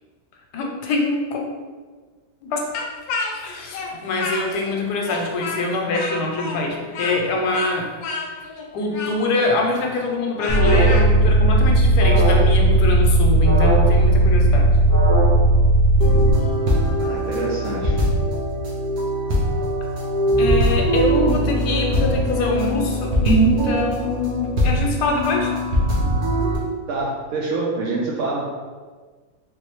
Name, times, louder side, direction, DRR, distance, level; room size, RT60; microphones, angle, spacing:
voice 1, 0.5-1.5 2.4-2.6 3.4-7.9 8.7-14.8 20.4-25.5, left 3 dB, 90° left, 1 dB, 1.2 m, -24 dB
Speech, 2.7-4.8 5.0-11.1, left 3 dB, 70° left, 1.0 m, -30 dB
Alarm, 10.5-16.3, right 1 dB, 25° left, 0.4 m, -15 dB
sound 1, 16.0-26.6, equal, 90° right, 1.4 m, -21 dB
voice 2, 17.0-18.0 26.9-28.7, right 3 dB, 70° right, -4 dB, 0.7 m, -26 dB
3.9 x 2.6 x 3.0 m, 1.4 s
omnidirectional pair, 1.7 m